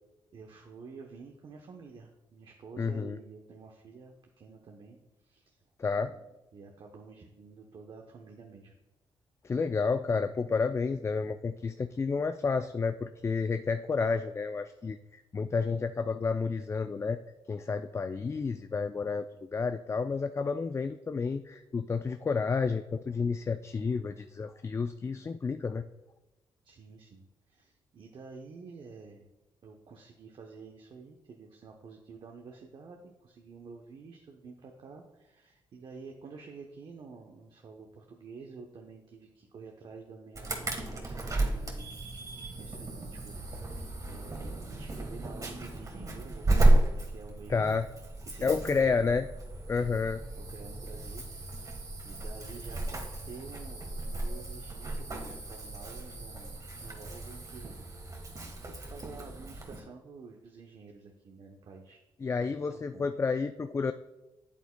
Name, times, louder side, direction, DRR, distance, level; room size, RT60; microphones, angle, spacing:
voice 1, 0.3-5.6 6.0-6.2 6.5-8.7 26.6-29.3 29.6-41.9 42.4-43.3 43.6-47.8 48.2-49.0 49.7-50.1 50.4-56.6 56.8-57.8 58.2-58.3 58.6-62.0 62.4-63.1, right 4 dB, 55° right, 2 dB, 0.8 m, -49 dB
voice 2, 2.8-3.2 5.8-6.1 9.4-17.2 17.5-25.8 47.5-47.9 48.4-49.3 49.7-50.2 62.2-63.9, left 4 dB, 30° left, 9 dB, 0.3 m, -30 dB
Insect / Alarm, 40.4-59.8, right 2 dB, 35° right, 1.4 m, -33 dB
8.4 x 8.2 x 2.2 m, 1.0 s
cardioid pair, 65°, 10 cm